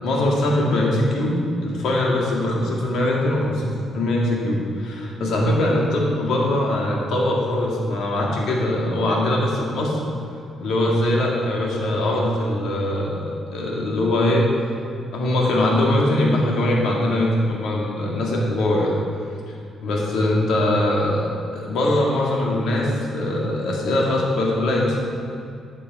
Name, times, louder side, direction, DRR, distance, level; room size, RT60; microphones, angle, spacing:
voice 1, 0.0-10.0 10.6-14.5 15.1-18.9 19.8-25.0, left 1 dB, 75° left, -2 dB, 2.2 m, -22 dB
10.5 x 6.8 x 4.8 m, 2.4 s
cardioid pair, 90°, 0 cm